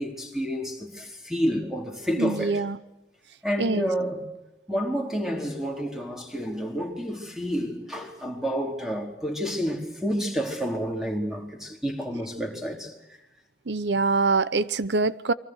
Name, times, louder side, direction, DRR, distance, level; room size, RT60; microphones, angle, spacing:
voice 1, 0.0-2.6 3.4-4.3 4.7-12.9, equal, 5° right, 4.3 m, -29 dB
voice 2, 2.2-2.8 3.6-3.9 13.7-15.3, right 3 dB, 90° right, 0.8 m, -24 dB
29.0 x 23.5 x 6.6 m
head